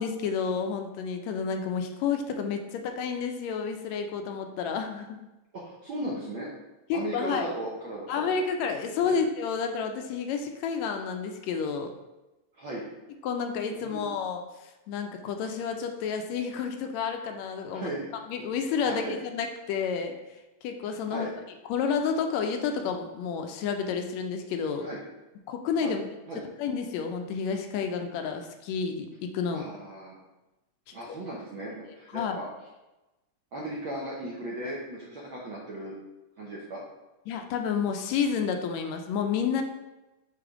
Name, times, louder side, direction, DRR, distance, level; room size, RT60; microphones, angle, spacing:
voice 1, 0.0-5.3 6.9-7.5 8.1-11.9 13.2-17.9 18.3-21.3 21.7-24.9 25.5-26.2 26.6-29.7 31.1-31.2 32.1-32.4 37.3-39.6, left 6 dB, 80° left, 5 dB, 1.7 m, -30 dB
voice 2, 5.5-6.5 6.9-8.3 9.0-9.2 12.5-12.8 13.7-14.1 17.7-18.1 18.9-19.2 21.1-21.3 24.8-25.0 25.8-26.0 26.3-26.4 29.5-30.2 30.9-32.5 33.5-35.9 36.4-36.8, right 1 dB, 80° right, -4 dB, 1.1 m, -36 dB
6.4 x 3.3 x 4.9 m, 1.0 s
omnidirectional pair, 3.5 m